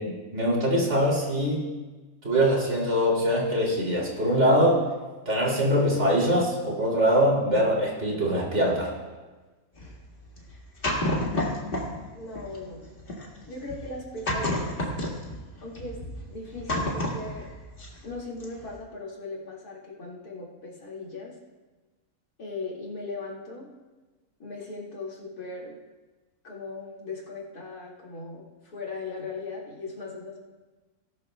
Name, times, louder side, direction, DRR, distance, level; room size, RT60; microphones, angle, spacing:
voice 1, 0.3-1.6 2.2-4.8 5.2-8.9, equal, 50° right, -4 dB, 3.1 m, -23 dB
sound 1, 9.8-12.0 12.4-18.1 18.4-18.7, left 1 dB, 40° left, 1.9 m, -30 dB
voice 2, 11.0-11.4 12.1-12.9 13.5-14.8 15.6-17.5 18.0-21.3 22.4-23.7 24.4-25.8 26.4-30.4, left 3 dB, 85° left, -4 dB, 2.7 m, -38 dB
18.0 x 12.0 x 2.2 m, 1.2 s
omnidirectional pair, 1.6 m